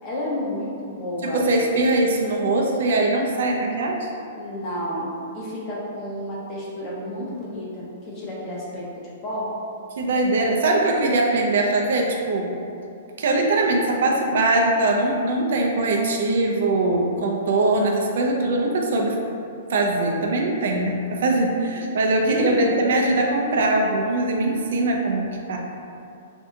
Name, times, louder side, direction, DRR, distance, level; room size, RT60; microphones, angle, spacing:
voice 1, 0.0-1.4 4.4-9.5 22.3-22.7, left 1 dB, 30° left, -6 dB, 0.8 m, -30 dB
voice 2, 1.2-4.1 10.0-12.5 13.2-19.2 19.7-25.6, right 2 dB, 70° right, 1 dB, 0.5 m, -21 dB
2.7 x 2.3 x 3.7 m, 2.6 s
hypercardioid pair, 160°, 0 cm